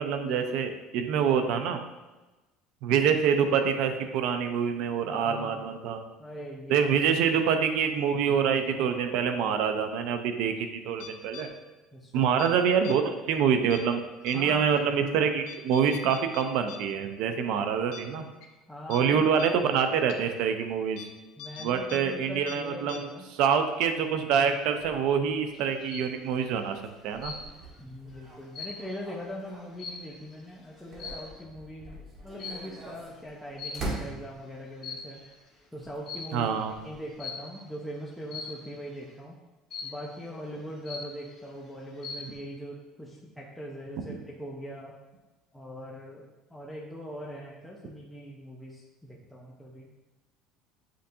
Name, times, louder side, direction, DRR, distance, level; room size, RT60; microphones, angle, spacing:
voice 1, 0.0-1.8 2.8-6.0 6.7-11.5 12.1-18.3 18.9-21.0 21.6-23.1 23.4-26.8 27.0-27.3 36.3-36.7, right 7 dB, 65° right, 7 dB, 0.5 m, -26 dB
voice 2, 5.1-5.7 6.2-6.9 11.9-12.3 14.2-14.6 18.7-19.3 21.4-23.3 27.8-35.2 35.7-36.5 36.8-39.4 39.8-44.9 45.5-49.9, equal, ahead, -4 dB, 0.6 m, -41 dB
sound 1, 11.0-11.5 12.2-12.5 12.8-13.0 13.7-13.9 14.3-14.4 14.8-14.9 15.5-16.8 17.1-17.2 17.6-17.7 17.9-18.0 18.4-18.5 18.9-19.0 19.4-19.5 20.1-20.2 21.0-21.1 21.4-22.0 22.2-22.6 22.9-23.0, left 8 dB, 75° left, 0.5 m, -43 dB
sound 2, 25.4-30.1 30.5-34.7 35.7-37.2, right 2 dB, 35° right, 1.3 m, -43 dB
sound 3, 25.5-26.2 27.2-27.7 28.1-30.4 30.9-31.4 32.4-32.8 33.6-34.2 34.7-35.4 36.1-36.4 37.2-37.6 38.3-38.7 39.7-40.2 40.6-40.7 40.9-41.5 41.8-42.4, left 4 dB, 35° left, 1.3 m, -40 dB
7.5 x 2.6 x 2.7 m, 1.1 s
cardioid pair, 125°, 0 cm